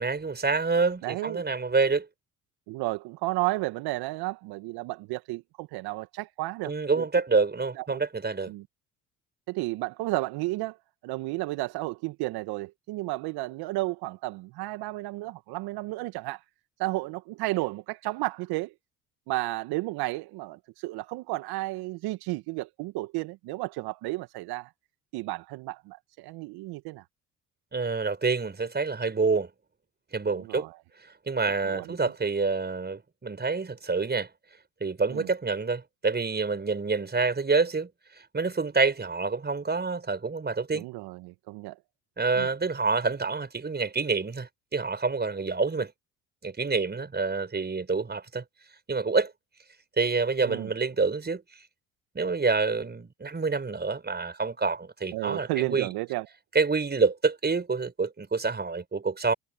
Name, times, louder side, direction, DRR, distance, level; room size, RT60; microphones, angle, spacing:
voice 1, 0.0-2.1 6.7-8.5 27.7-29.5 30.1-30.7 31.3-34.3 34.8-40.9 42.2-45.9 46.4-48.4 48.9-49.3 50.0-51.4 52.1-55.9 56.5-59.3, right 4 dB, 25° right, 5.5 m, -27 dB
voice 2, 1.0-1.4 2.7-7.0 7.8-8.0 8.5-8.6 9.5-10.8 11.0-16.4 16.8-18.7 19.3-24.7 25.1-27.0 30.3-30.7 31.6-32.0 35.1-35.3 40.7-41.8 42.4-42.5 50.4-50.7 55.1-56.2, right 20 dB, 65° right, 1.8 m, -32 dB
hypercardioid pair, 60°, 41 cm